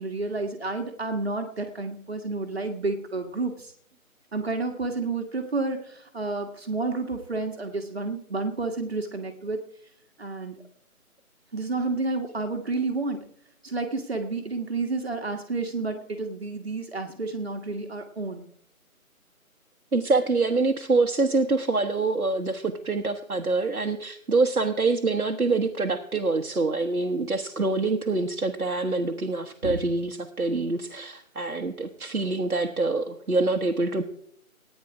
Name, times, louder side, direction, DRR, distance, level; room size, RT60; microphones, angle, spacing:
voice 1, 0.0-3.7 4.3-9.6 10.2-10.6 11.5-13.2 13.6-18.5 29.6-29.8, right 3 dB, 45° right, 5 dB, 1.5 m, -30 dB
voice 2, 19.9-34.0, right 3 dB, 80° right, 4 dB, 1.4 m, -25 dB
18.0 x 9.5 x 4.8 m, 0.69 s
figure-of-eight pair, 155°, 43 cm